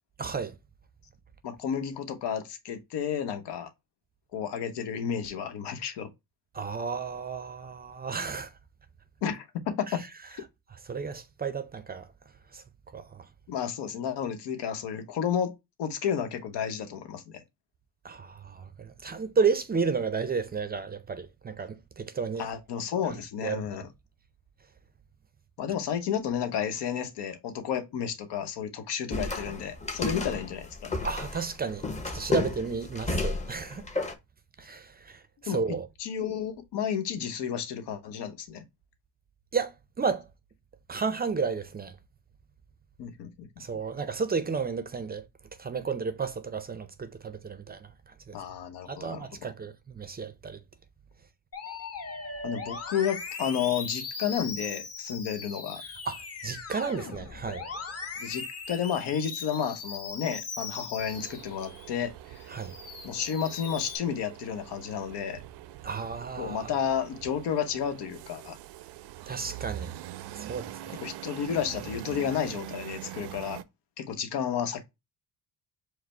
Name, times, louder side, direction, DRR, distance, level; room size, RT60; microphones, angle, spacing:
voice 1, 0.2-0.6 6.5-8.5 9.9-10.0 10.9-12.1 12.5-12.6 12.9-13.2 18.0-22.5 23.1-23.6 31.0-31.8 32.1-33.9 34.6-35.9 39.5-40.3 40.9-41.9 43.6-45.2 45.6-47.9 48.3-48.4 48.9-50.6 56.1-57.7 62.5-62.7 65.8-66.7 69.3-69.9 70.3-71.0, right 5 dB, 25° right, 0.4 m, -32 dB
voice 2, 1.4-3.7 4.3-6.1 9.2-10.0 13.5-15.5 15.8-17.4 22.4-23.9 25.6-31.0 35.4-38.6 43.0-43.5 48.3-49.2 52.4-55.8 58.2-62.4 63.0-65.4 66.4-68.6 71.0-73.6 74.0-74.8, left 8 dB, 80° left, 0.9 m, -32 dB
sound 1, 29.1-34.1, left 3 dB, 15° left, 0.7 m, -32 dB
Musical instrument, 51.5-61.9 62.4-64.0, left 4 dB, 35° left, 1.1 m, -39 dB
sound 2, 61.0-73.6, right 13 dB, 75° right, 0.5 m, -44 dB
4.9 x 2.0 x 4.2 m
cardioid pair, 100°, 40 cm